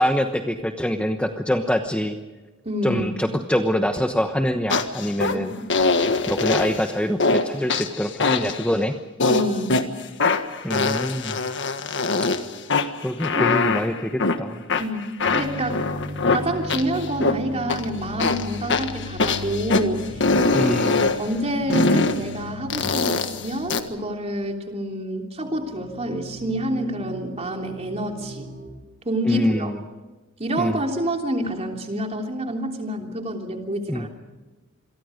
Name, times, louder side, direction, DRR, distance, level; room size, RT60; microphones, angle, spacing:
voice 1, 0.0-2.2 2.8-5.5 6.3-8.9 10.6-11.4 13.0-14.6 20.5-21.1 29.2-29.8 30.6-30.8 33.9-34.1, equal, 5° left, 5 dB, 1.1 m, -24 dB
voice 2, 2.6-3.1 5.3-5.7 9.3-9.8 13.3-13.5 14.8-15.0 15.3-15.8 16.3-20.1 20.5-20.8 21.2-28.5 29.0-29.7 30.4-34.1, right 1 dB, 30° right, 3 dB, 3.3 m, -27 dB
sound 1, 4.7-5.3 5.7-6.8 7.2-7.4 7.7-8.7 9.2-9.8 10.2-12.4 12.7-14.4 14.7-17.3 17.7-17.8 18.2-19.8 20.2-21.2 21.7-22.2 22.7-23.8, left 3 dB, 60° left, 1.6 m, -22 dB
sound 2, 15.2-25.2 25.4-28.7, left 2 dB, 55° right, 6.6 m, -37 dB
27.5 x 23.0 x 5.2 m, 1.2 s
head